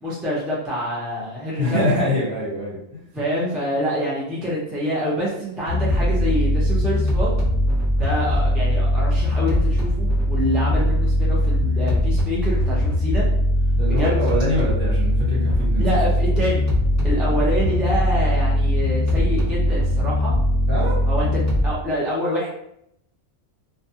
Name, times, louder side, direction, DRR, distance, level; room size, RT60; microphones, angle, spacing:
voice 1, 0.0-1.8 3.1-7.3 8.0-13.3 14.0-14.1 15.8-16.6 17.0-20.3 21.1-21.3 21.6-22.5, equal, ahead, -6 dB, 0.4 m, -26 dB
voice 2, 1.6-3.0 13.7-15.8 20.7-21.0, left 1 dB, 55° right, -8 dB, 1.3 m, -24 dB
sound 1, 5.7-21.7, equal, 15° left, 0.8 m, -20 dB
2.2 x 2.2 x 2.7 m, 0.75 s
omnidirectional pair, 1.2 m